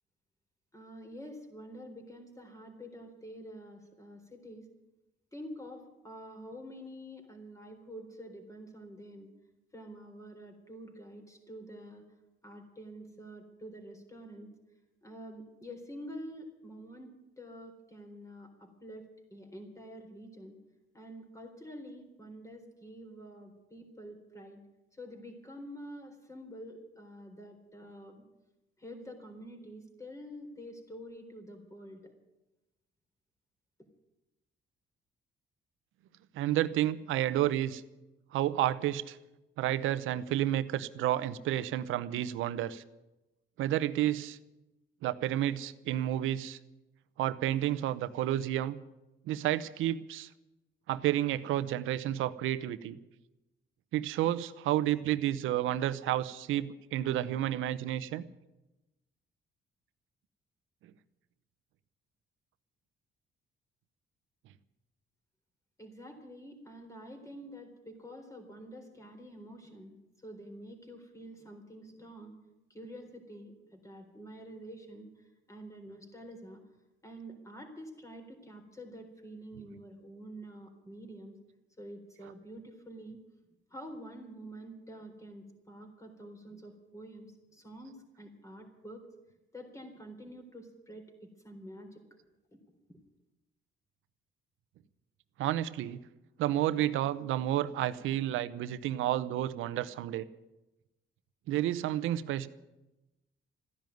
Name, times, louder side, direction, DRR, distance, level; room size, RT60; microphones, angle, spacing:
voice 1, 0.7-4.7 5.3-9.3 9.7-12.0 12.4-14.5 15.0-19.0 19.3-20.6 20.9-24.6 24.9-28.2 28.8-32.1 65.8-72.3 72.7-76.6 77.0-81.3 81.8-83.2 83.7-89.1 89.5-92.0 92.5-92.6 92.9-93.0, equal, 15° left, 4 dB, 4.0 m, -47 dB
voice 2, 36.3-37.8 38.3-39.2 39.6-42.8 43.6-44.4 45.0-46.6 47.2-48.8 49.3-50.3 50.9-53.0 53.9-58.2 95.4-96.0 96.4-100.3 101.5-102.5, right 13 dB, 90° right, 14 dB, 0.8 m, -30 dB
14.5 x 10.5 x 9.3 m, 0.99 s
cardioid pair, 90°, 20 cm